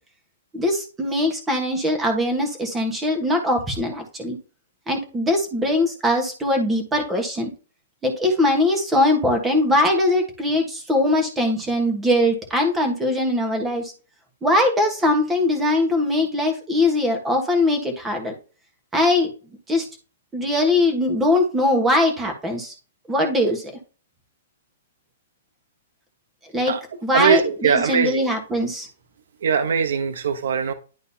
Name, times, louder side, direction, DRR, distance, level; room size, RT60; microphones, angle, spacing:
voice 1, 0.5-4.4 4.9-7.5 8.0-13.9 14.4-18.3 18.9-19.3 19.7-19.9 20.3-22.7 23.1-23.6 26.5-26.8 27.0-28.9, left 1 dB, 5° right, 4 dB, 1.3 m, -21 dB
voice 2, 27.1-28.3 29.4-30.7, right 6 dB, 70° right, 9 dB, 1.0 m, -21 dB
11.0 x 3.9 x 2.8 m, 0.35 s
hypercardioid pair, 175°, 0 cm